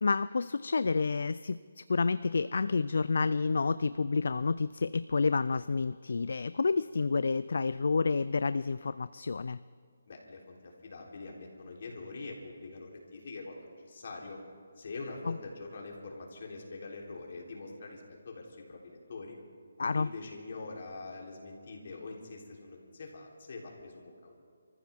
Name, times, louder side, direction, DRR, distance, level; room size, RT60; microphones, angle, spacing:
voice 1, 0.0-9.6 15.3-15.4 19.8-20.1, left 4 dB, 65° left, 15 dB, 0.3 m, -29 dB
voice 2, 10.1-14.4 14.8-19.4 19.9-24.4, left 3 dB, 50° left, -1 dB, 3.5 m, -44 dB
27.5 x 14.5 x 3.6 m, 2.2 s
hypercardioid pair, 170°, 0 cm